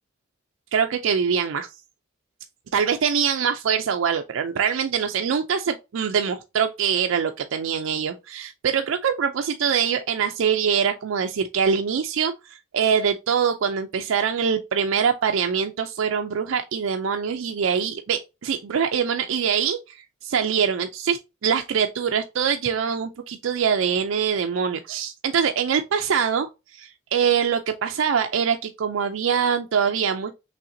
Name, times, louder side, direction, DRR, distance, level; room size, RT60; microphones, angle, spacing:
voice 1, 0.7-1.7 2.7-30.3, right 7 dB, 70° right, 0.4 m, -24 dB
5.6 x 3.3 x 2.6 m
head